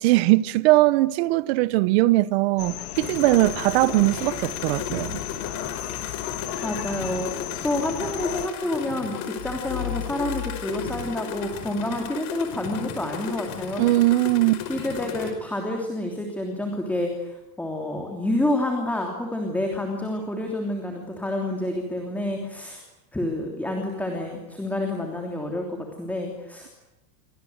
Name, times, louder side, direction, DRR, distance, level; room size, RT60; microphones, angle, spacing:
voice 1, 0.0-5.2 13.8-14.6, right 18 dB, 40° right, 1.0 m, -20 dB
sound 1, 2.6-8.5, left 13 dB, 60° left, 3.2 m, -34 dB
sound 2, 2.9-15.3, left 8 dB, 35° left, 5.3 m, -35 dB
voice 2, 5.7-6.2 6.6-7.3 7.6-13.9 14.7-22.8 23.1-26.7, left 1 dB, 5° left, 3.1 m, -29 dB
sound 3, 9.4-12.2, left 13 dB, 80° left, 2.4 m, -36 dB
29.5 x 25.0 x 8.0 m
supercardioid pair, 170°, 49 cm